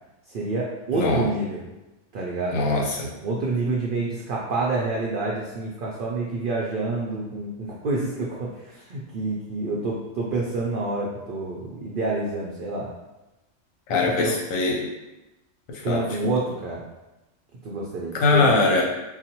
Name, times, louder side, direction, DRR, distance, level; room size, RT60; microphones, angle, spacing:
voice 1, 0.3-1.6 2.1-2.6 3.2-12.9 13.9-14.4 15.8-16.8 17.6-18.4, right 3 dB, 70° right, -3 dB, 0.5 m, -28 dB
voice 2, 0.9-1.2 2.5-3.1 13.9-14.9 15.9-16.0 18.2-18.8, left 3 dB, 85° left, 0 dB, 1.1 m, -21 dB
3.9 x 2.1 x 2.8 m, 1.0 s
omnidirectional pair, 1.4 m